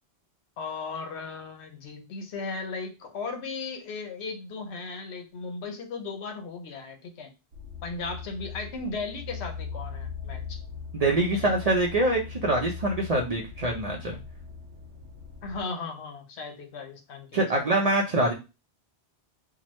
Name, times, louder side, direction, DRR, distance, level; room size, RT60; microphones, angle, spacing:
voice 1, 0.6-7.3 7.8-10.6 11.3-11.7 15.4-18.2, left 4 dB, 75° left, 5 dB, 0.9 m, -37 dB
sound 1, 7.5-15.6, left 6 dB, 85° right, 1.0 m, -40 dB
voice 2, 10.9-14.2 17.3-18.3, right 2 dB, 50° right, -1 dB, 0.5 m, -24 dB
2.9 x 2.2 x 3.0 m, 0.28 s
omnidirectional pair, 1.1 m